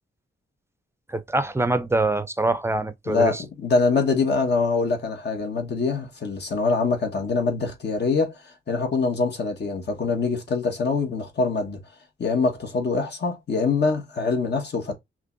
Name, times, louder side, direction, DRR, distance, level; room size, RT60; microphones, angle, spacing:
voice 1, 1.1-3.4, right 2 dB, 15° right, 0.5 m, -24 dB
voice 2, 3.1-8.4 8.7-11.8 12.2-14.9, left 4 dB, 60° left, 1.4 m, -24 dB
5.3 x 3.0 x 2.6 m
wide cardioid pair, 115°, 20 cm